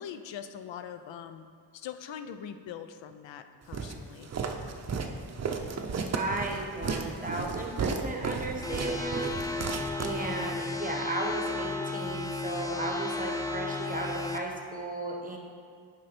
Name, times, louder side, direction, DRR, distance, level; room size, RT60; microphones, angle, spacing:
voice 1, 0.0-1.5 1.7-4.3, left 8 dB, 80° left, 9 dB, 0.5 m, -42 dB
Walk footsteps, 3.7-10.6, right 5 dB, 35° right, 0.6 m, -34 dB
voice 2, 6.1-15.4, right 2 dB, 20° right, 1 dB, 1.1 m, -35 dB
sound 1, 8.6-14.4, left 3 dB, 10° left, 0.6 m, -34 dB
7.6 x 5.4 x 4.2 m, 2.2 s
cardioid pair, 85°, 44 cm